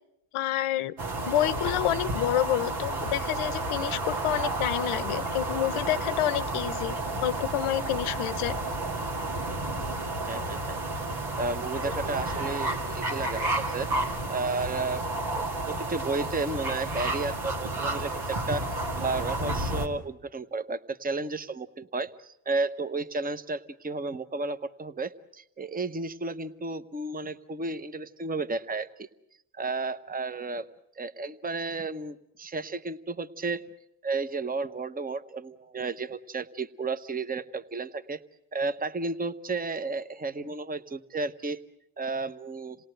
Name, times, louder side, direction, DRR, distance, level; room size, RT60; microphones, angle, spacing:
voice 1, 0.3-1.0 1.3-8.6, left 13 dB, 85° left, 16 dB, 0.8 m, -28 dB
sound 1, 1.0-19.9, right 2 dB, 85° right, 2.5 m, -31 dB
voice 2, 10.3-10.8 11.4-13.9 14.3-15.0 15.3-18.7 19.0-22.1 22.5-29.1 29.6-30.7 31.0-33.6 34.0-38.2 38.5-41.6 42.0-42.8, right 3 dB, 15° right, 12 dB, 0.9 m, -32 dB
27.5 x 18.0 x 7.9 m, 0.79 s
cardioid pair, 70°, 49 cm